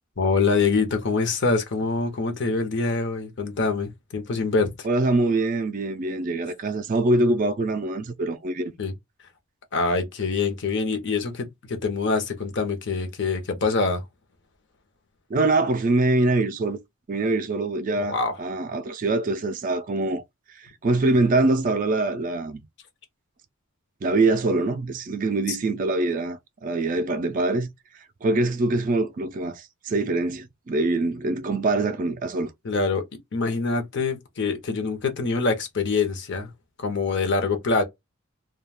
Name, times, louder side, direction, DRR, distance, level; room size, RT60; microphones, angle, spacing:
voice 1, 0.2-4.7 8.8-8.9 9.7-14.0 18.1-18.3 25.5-25.6 32.6-33.0 33.3-36.5 36.8-37.8, left 4 dB, 55° left, 0.7 m, -25 dB
voice 2, 4.8-8.7 15.3-16.8 17.1-20.2 20.6-22.6 24.0-27.7 28.2-32.5, right 2 dB, 40° right, 0.3 m, -24 dB
2.3 x 2.3 x 3.3 m
head